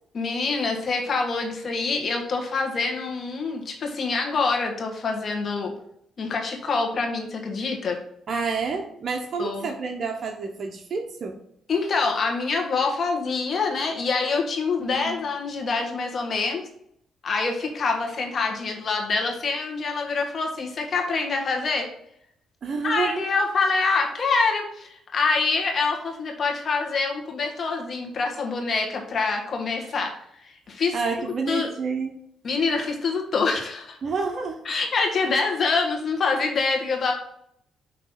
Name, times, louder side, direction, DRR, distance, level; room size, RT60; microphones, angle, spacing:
voice 1, 0.1-5.7 6.2-8.0 9.4-9.7 11.7-16.6 17.2-21.9 22.8-30.1 30.4-31.0 31.5-31.7 32.4-34.0 34.6-37.1, left 4 dB, 50° left, 2 dB, 1.4 m, -25 dB
voice 2, 8.3-11.4 14.8-15.2 22.6-23.2 30.9-32.2 34.0-34.6, right 4 dB, 50° right, 3 dB, 0.8 m, -29 dB
5.9 x 3.0 x 5.7 m, 0.70 s
cardioid pair, 90°, 0 cm